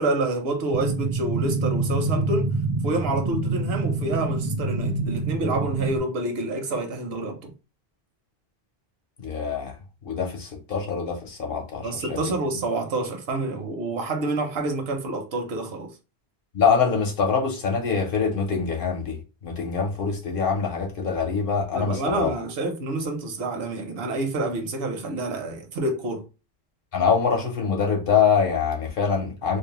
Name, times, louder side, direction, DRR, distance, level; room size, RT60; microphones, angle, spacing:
voice 1, 0.0-2.6 2.8-7.5 11.8-15.9 21.7-26.2, right 2 dB, 75° right, 0.9 m, -28 dB
sound 1, 0.7-6.0, right 3 dB, 45° right, 0.5 m, -26 dB
voice 2, 9.2-9.8 10.0-12.2 16.5-22.3 26.9-29.6, left 6 dB, 60° left, 0.8 m, -24 dB
2.5 x 2.0 x 2.8 m
omnidirectional pair, 1.0 m